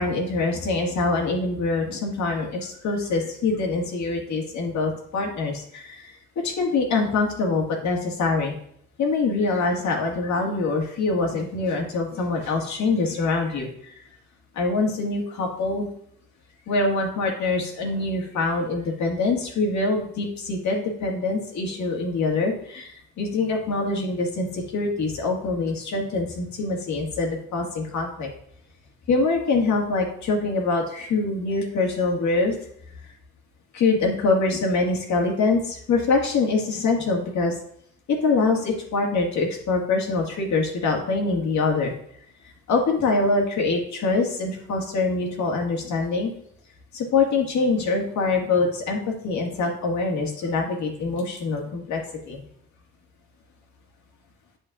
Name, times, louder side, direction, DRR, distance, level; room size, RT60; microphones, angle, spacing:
voice 1, 0.0-8.5 9.0-13.9 14.6-15.9 16.7-28.3 29.1-32.6 33.7-37.6 38.1-41.9 42.7-46.3 46.9-52.0 52.3-52.4, left 3 dB, 70° left, 1 dB, 1.9 m, -24 dB
8.5 x 6.4 x 2.5 m, 0.67 s
cardioid pair, 90°, 30 cm